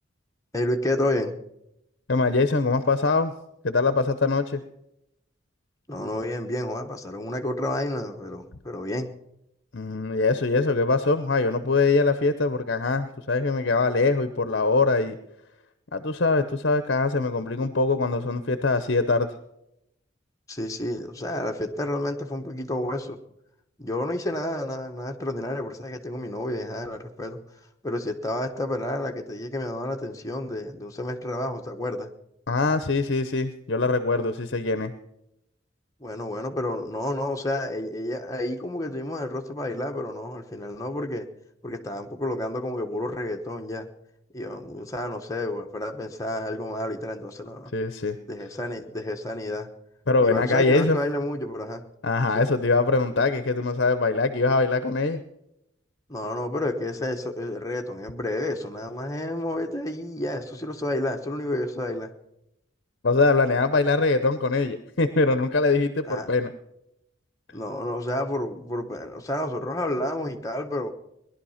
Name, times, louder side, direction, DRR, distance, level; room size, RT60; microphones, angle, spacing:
voice 1, 0.5-1.4 5.9-9.1 20.5-23.2 23.8-27.4 27.8-32.1 36.0-41.3 41.6-43.9 44.3-47.7 48.3-49.7 50.2-51.8 52.3-52.5 56.1-62.1 66.0-66.3 67.5-70.9, left 1 dB, 15° left, 3 dB, 1.2 m, -30 dB
voice 2, 2.1-3.3 3.6-4.6 9.7-15.2 15.9-19.3 32.5-34.9 47.7-48.2 50.1-51.0 52.0-55.2 63.0-66.5, left 3 dB, 55° left, 11 dB, 0.8 m, -23 dB
19.0 x 11.5 x 5.7 m, 0.83 s
head